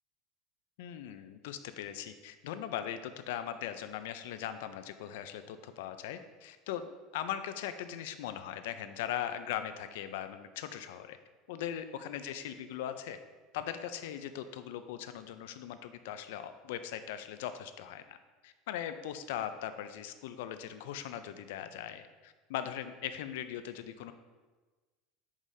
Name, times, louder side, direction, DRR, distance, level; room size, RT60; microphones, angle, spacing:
voice 1, 0.8-11.2 11.5-13.2 13.5-18.2 18.4-24.1, left 10 dB, 85° left, 10 dB, 0.4 m, -40 dB
7.3 x 4.8 x 2.7 m, 1.3 s
cardioid pair, 170°, 0 cm